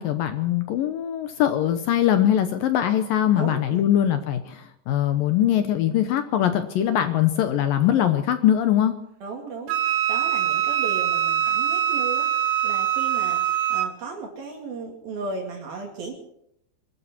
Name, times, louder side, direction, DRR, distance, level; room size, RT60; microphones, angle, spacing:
voice 1, 0.0-9.0, left 11 dB, 75° left, 9 dB, 2.1 m, -22 dB
voice 2, 3.4-3.9 9.2-13.4 13.7-16.1, right 4 dB, 60° right, 1 dB, 3.9 m, -35 dB
Wind instrument woodwind instrument, 9.7-13.9, right 10 dB, 80° right, 3.0 m, -23 dB
25.0 x 13.0 x 4.4 m, 0.73 s
omnidirectional pair, 5.2 m